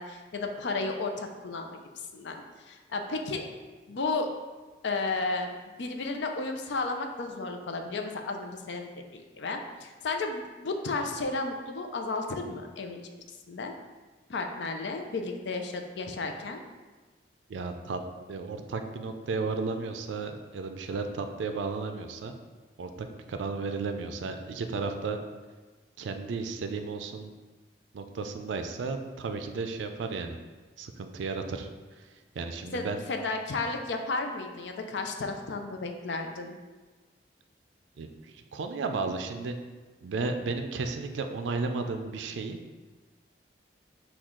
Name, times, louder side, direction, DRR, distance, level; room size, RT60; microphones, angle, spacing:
voice 1, 0.0-1.7 2.1-3.5 3.9-4.3 4.8-13.0 13.5-13.7 14.3-16.6 32.7-36.6, left 3 dB, 75° left, 4 dB, 0.5 m, -33 dB
voice 2, 17.5-18.0 18.3-22.4 22.8-25.2 26.0-27.3 27.9-30.4 30.8-31.7 32.0-32.1 32.4-33.0 38.0-39.6 40.0-42.6, right 4 dB, 85° right, 6 dB, 0.4 m, -34 dB
6.1 x 2.3 x 3.7 m, 1.3 s
head